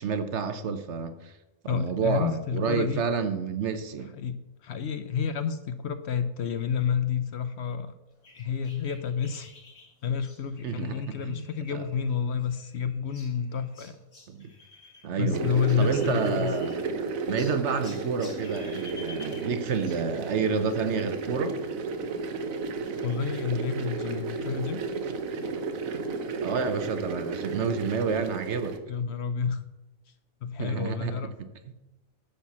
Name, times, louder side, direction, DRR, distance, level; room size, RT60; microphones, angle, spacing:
voice 1, 0.0-1.3 1.6-4.1 10.6-11.4 11.7-11.8 14.3-14.5 15.0-15.5 15.8-16.8 17.3-21.5 26.4-28.8 30.6-31.7, right 5 dB, 60° right, 1.0 m, -29 dB
voice 2, 1.7-3.0 4.1-7.9 8.3-9.5 10.0-14.0 15.2-16.5 23.0-24.8 28.9-29.6 30.4-31.3, left 7 dB, 60° left, 0.8 m, -29 dB
sound 1, 8.2-15.1 15.3-17.0 17.4-20.1, left 3 dB, 85° left, 3.6 m, -51 dB
sound 2, 15.3-28.8, right 4 dB, 80° right, 1.3 m, -33 dB
10.5 x 4.4 x 7.2 m
omnidirectional pair, 1.4 m